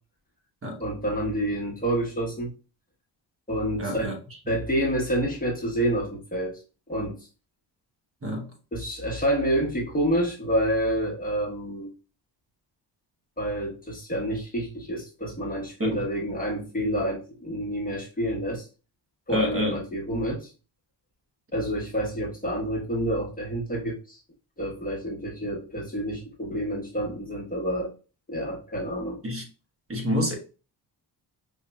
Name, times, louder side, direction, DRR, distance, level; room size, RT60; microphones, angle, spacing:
voice 1, 0.8-2.5 3.5-4.1 4.5-6.6 6.9-7.2 8.7-11.9 13.4-18.7 19.3-20.5 21.5-24.2 24.6-27.9 28.3-29.2, right 1 dB, 20° left, 1.2 m, -28 dB
voice 2, 3.8-4.1 8.2-8.5 15.8-16.1 19.3-19.8 29.2-29.4 29.9-30.4, left 1 dB, 30° right, 1.1 m, -27 dB
5.1 x 2.6 x 2.2 m
cardioid pair, 90°, 43 cm